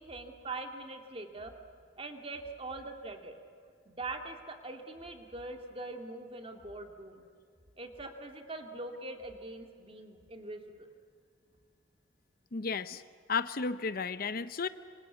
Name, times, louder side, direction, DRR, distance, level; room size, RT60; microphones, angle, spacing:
voice 1, 0.0-1.5 2.0-3.4 3.9-7.3 7.8-10.9, right 2 dB, 30° right, 4 dB, 2.3 m, -42 dB
voice 2, 12.5-13.0 13.3-14.7, left 5 dB, 50° left, 13 dB, 0.7 m, -33 dB
26.0 x 26.0 x 8.4 m, 2.2 s
head